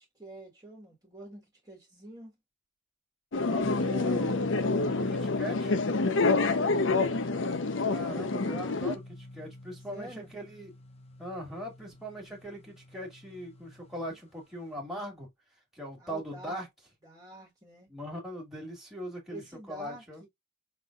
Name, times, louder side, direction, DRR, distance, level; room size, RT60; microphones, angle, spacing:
voice 1, 0.0-2.3 6.0-7.1 9.9-10.3 16.0-16.6 17.0-17.9 19.3-20.3, right 1 dB, 20° right, 1.7 m, -47 dB
sound 1, 3.3-9.0, left 3 dB, 80° left, 0.7 m, -27 dB
voice 2, 3.4-5.7 7.8-10.7 11.2-15.3 15.7-16.7 17.9-19.4 19.7-20.2, equal, ahead, 1.9 m, -40 dB
sound 2, 3.6-14.1, left 2 dB, 35° left, 0.9 m, -42 dB
5.8 x 3.4 x 2.4 m
head